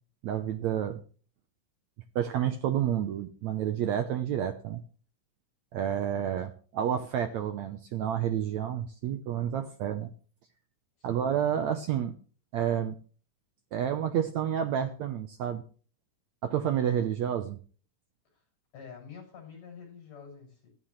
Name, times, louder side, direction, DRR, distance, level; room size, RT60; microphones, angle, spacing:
voice 1, 0.2-1.0 2.1-4.8 5.7-10.1 11.0-12.1 12.5-13.0 13.7-15.6 16.4-17.6, right 9 dB, 75° right, 9 dB, 1.7 m, -30 dB
voice 2, 11.0-11.3 18.3-18.4 18.7-20.7, left 6 dB, 60° left, 1 dB, 8.0 m, -48 dB
14.5 x 14.5 x 3.2 m, 0.40 s
omnidirectional pair, 4.2 m